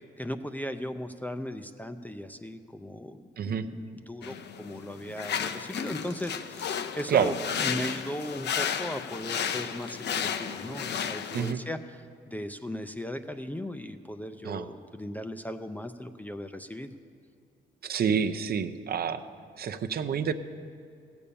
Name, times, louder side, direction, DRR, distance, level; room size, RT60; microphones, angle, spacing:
voice 1, 0.2-16.9, left 1 dB, 10° left, 8 dB, 0.5 m, -37 dB
sound 1, 4.2-11.5, left 7 dB, 60° left, 0.7 m, -33 dB
voice 2, 17.8-19.2 19.6-20.3, right 7 dB, 50° right, 9 dB, 0.7 m, -28 dB
16.0 x 7.0 x 6.9 m, 2.4 s
cardioid pair, 90°, 20 cm